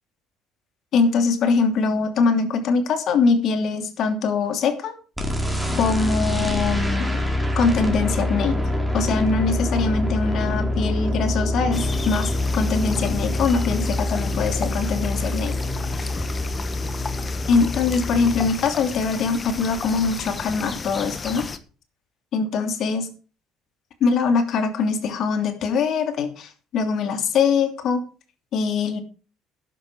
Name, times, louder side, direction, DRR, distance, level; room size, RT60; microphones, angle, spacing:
voice 1, 0.9-4.9 5.8-7.1 7.6-8.6 8.9-15.6 17.5-21.5 22.3-23.1 24.0-28.0 28.5-29.0, left 5 dB, 50° left, 7 dB, 2.8 m, -22 dB
sound 1, 5.2-18.5, left 1 dB, 5° right, 4.6 m, -25 dB
sound 2, 11.7-21.6, left 4 dB, 30° left, 1.5 m, -33 dB
12.0 x 10.5 x 4.9 m, 0.37 s
figure-of-eight pair, 55°, 0 cm